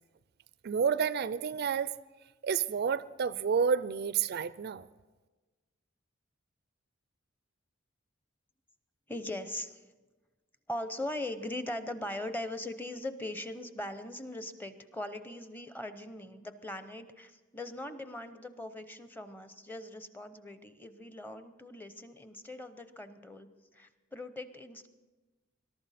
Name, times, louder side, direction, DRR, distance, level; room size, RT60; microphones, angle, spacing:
voice 1, 0.6-1.9 2.4-4.9, right 6 dB, 55° right, 17 dB, 0.4 m, -30 dB
voice 2, 9.1-9.8 10.7-24.9, left 1 dB, 10° left, 10 dB, 0.7 m, -40 dB
21.5 x 12.0 x 4.2 m, 1.2 s
head